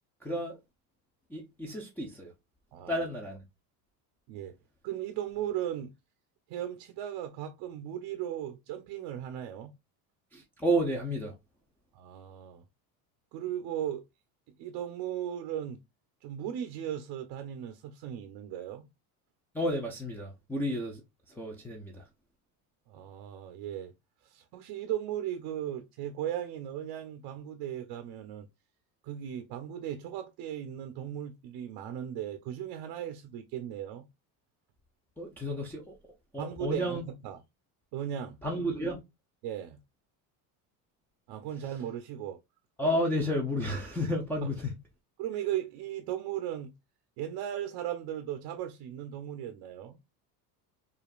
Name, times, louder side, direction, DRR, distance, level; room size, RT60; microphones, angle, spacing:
voice 1, 0.2-0.6 1.3-2.3 2.9-3.4 10.3-11.3 19.5-21.0 21.3-22.0 35.2-36.0 36.3-37.0 38.4-39.0 42.8-44.7, equal, 5° left, 0.7 m, -31 dB
voice 2, 2.7-3.0 4.3-4.5 4.8-5.9 6.5-9.7 11.9-12.6 13.3-14.0 14.6-15.8 16.2-18.9 22.9-23.9 24.2-28.5 29.0-34.0 36.4-37.4 37.9-38.4 39.4-39.8 41.3-42.4 44.4-44.5 45.2-46.7 47.2-50.0, right 11 dB, 60° right, 0.7 m, -37 dB
4.9 x 2.7 x 2.4 m
cardioid pair, 125°, 44 cm